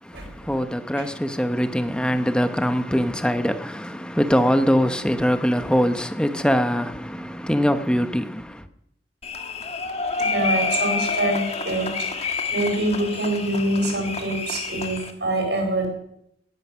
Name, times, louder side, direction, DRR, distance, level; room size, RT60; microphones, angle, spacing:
voice 1, 0.0-8.7, equal, 5° left, 0.9 m, -23 dB
sound 1, 9.2-15.1, left 4 dB, 35° left, 1.4 m, -28 dB
voice 2, 10.2-15.9, right 1 dB, 70° right, 4.9 m, -25 dB
17.5 x 10.0 x 6.2 m
head